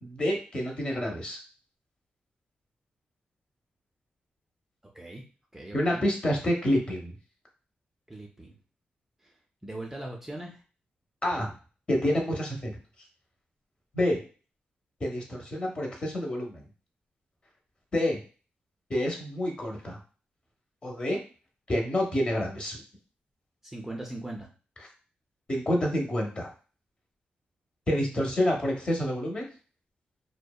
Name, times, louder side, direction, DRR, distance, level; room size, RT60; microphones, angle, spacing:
voice 1, 0.0-1.4 5.7-7.1 11.2-11.5 11.9-12.7 13.9-14.2 15.0-16.6 17.9-18.2 18.9-20.0 20.8-21.2 21.7-22.8 25.5-26.5 27.9-29.5, left 1 dB, 30° left, 1 dB, 0.7 m, -28 dB
voice 2, 5.5-6.1 8.1-8.6 9.6-10.6 23.6-24.5, right 1 dB, 10° right, -1 dB, 0.4 m, -39 dB
2.7 x 2.1 x 2.2 m, 0.36 s
wide cardioid pair, 110°, 3 cm